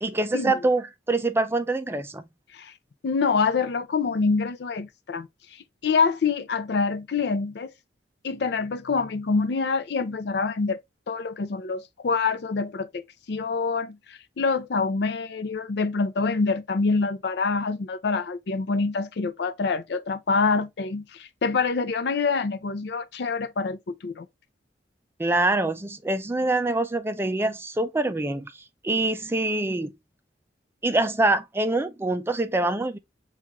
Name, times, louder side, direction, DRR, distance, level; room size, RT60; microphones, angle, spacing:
voice 1, 0.0-2.2 25.2-29.9 30.8-33.0, right 2 dB, 15° right, 0.4 m, -25 dB
voice 2, 3.0-7.7 8.2-10.8 11.1-13.0 13.3-24.3, left 4 dB, 65° left, 0.4 m, -26 dB
5.9 x 2.4 x 2.9 m
head